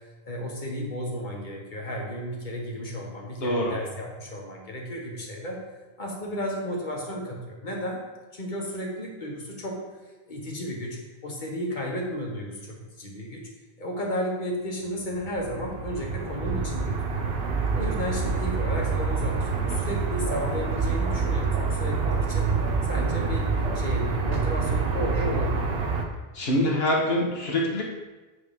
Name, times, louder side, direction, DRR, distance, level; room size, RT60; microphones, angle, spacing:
voice 1, 0.2-5.6 6.0-8.0 8.3-9.8 10.3-13.4 13.8-17.3 17.7-22.5 22.9-23.5 23.7-25.6, equal, 50° left, -1 dB, 1.4 m, -33 dB
voice 2, 3.4-3.8 26.3-27.9, left 1 dB, 70° left, -2 dB, 1.5 m, -24 dB
sound 1, 15.1-26.1, right 4 dB, 70° right, 1.1 m, -27 dB
8.7 x 5.0 x 3.6 m, 1.2 s
omnidirectional pair, 1.1 m